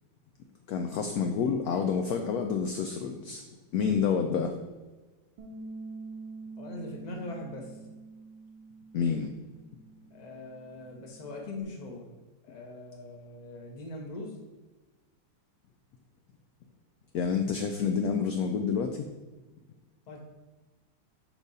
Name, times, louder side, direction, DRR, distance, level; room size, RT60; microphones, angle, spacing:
voice 1, 0.7-3.4 3.7-4.5 8.9-9.3 17.1-19.1, left 6 dB, 75° left, 5 dB, 0.8 m, -28 dB
Bass guitar, 5.4-11.6, right 3 dB, 70° right, 1.5 m, -46 dB
voice 2, 6.6-7.7 10.1-12.1 12.4-14.3 20.1-20.2, left 2 dB, 30° left, 0 dB, 0.8 m, -41 dB
6.2 x 5.2 x 4.1 m, 1.2 s
omnidirectional pair, 2.1 m